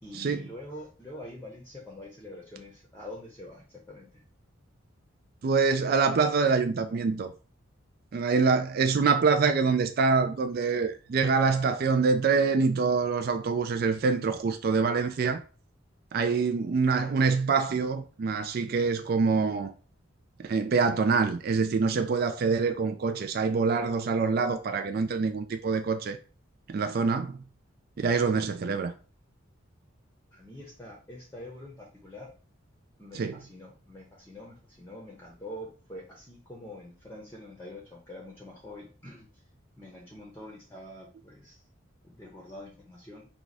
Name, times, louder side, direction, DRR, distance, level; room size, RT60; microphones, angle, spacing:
voice 1, 0.0-4.2 30.3-32.3 33.0-39.3 39.8-41.6 42.0-43.3, left 1 dB, 10° left, 0.7 m, -45 dB
voice 2, 5.4-7.3 8.1-15.4 16.1-19.7 20.4-26.2 26.7-27.4 28.0-28.9 33.1-33.4, right 4 dB, 45° right, 0.3 m, -25 dB
4.6 x 2.3 x 4.0 m
head